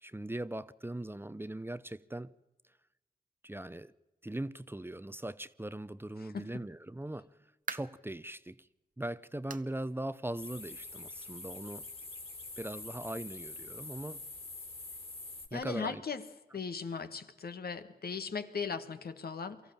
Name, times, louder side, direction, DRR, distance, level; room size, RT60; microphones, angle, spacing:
voice 1, 0.0-2.3 3.4-3.9 4.2-7.3 7.7-8.7 9.0-11.9 12.6-14.2 15.5-16.0, right 1 dB, 15° right, 0.7 m, -40 dB
sound 1, 7.3-8.1 8.6-8.7 9.5-9.8 10.1-10.2 10.7-10.8 11.9-12.0, right 5 dB, 55° right, 0.9 m, -44 dB
sound 2, 10.4-15.5, left 2 dB, 35° left, 3.2 m, -45 dB
voice 2, 15.5-16.2 16.5-19.6, left 5 dB, 75° left, 1.6 m, -38 dB
23.5 x 14.5 x 8.9 m
cardioid pair, 60°, 16 cm